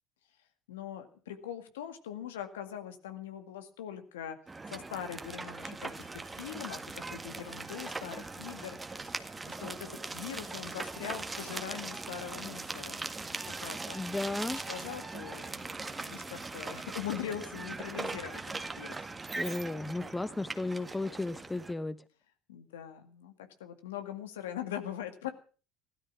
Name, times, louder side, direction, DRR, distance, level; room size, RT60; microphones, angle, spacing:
voice 1, 0.7-4.4 4.7-8.8 9.1-13.0 13.3-14.1 14.7-18.4 18.8-19.0 19.5-19.6 22.5-23.3 23.6-25.3, left 10 dB, 80° left, 8 dB, 2.0 m, -42 dB
sound 1, 4.5-21.7, right 3 dB, 20° right, 1.8 m, -40 dB
voice 2, 13.9-14.6 19.4-22.0, left 2 dB, 15° left, 14 dB, 1.2 m, -34 dB
16.5 x 13.5 x 6.1 m, 0.39 s
hypercardioid pair, 65°, 0 cm